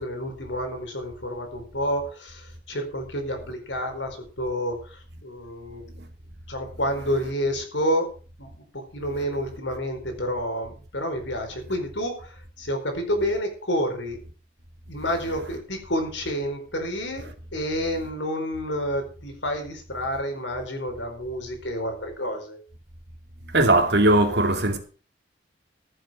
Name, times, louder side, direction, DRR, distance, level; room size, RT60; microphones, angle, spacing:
voice 1, 0.0-5.8 6.5-8.1 8.4-14.2 14.9-22.6, equal, 75° left, 4.7 m, -29 dB
voice 2, 23.5-24.8, right 2 dB, 60° right, 2.5 m, -19 dB
15.0 x 7.8 x 6.3 m
head